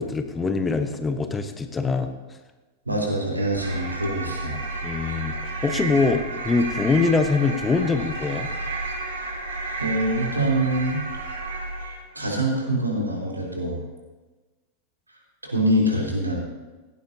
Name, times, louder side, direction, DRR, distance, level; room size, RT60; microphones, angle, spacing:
voice 1, 0.0-2.1 4.8-5.3 5.6-8.5, left 4 dB, 15° left, 7 dB, 1.2 m, -23 dB
voice 2, 2.9-4.6 9.2-9.4 9.8-11.0 12.1-13.8 15.1-16.4, right 1 dB, 80° right, -1 dB, 3.6 m, -25 dB
sound 1, 3.5-12.1, right 2 dB, 65° right, 2.6 m, -32 dB
17.0 x 16.5 x 2.8 m, 1.2 s
figure-of-eight pair, 90°, 0 cm